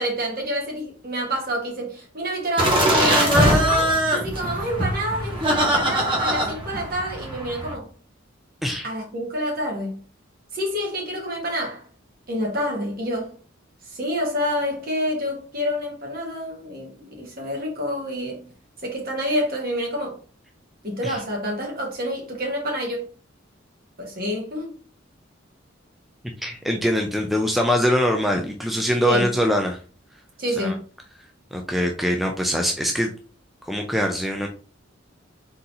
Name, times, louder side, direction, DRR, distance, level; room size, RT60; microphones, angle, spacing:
voice 1, 0.0-7.9 8.8-10.0 10.5-11.8 12.3-13.4 13.9-18.5 18.8-20.2 20.8-23.0 24.0-24.7 29.1-29.3 30.4-30.8, equal, 50° right, 1.6 m, -28 dB
sound 1, 2.6-7.7, equal, 25° right, 1.0 m, -22 dB
voice 2, 26.4-29.8 30.6-30.7 31.5-33.1 33.7-34.5, equal, ahead, 0.4 m, -23 dB
3.9 x 3.9 x 2.8 m
head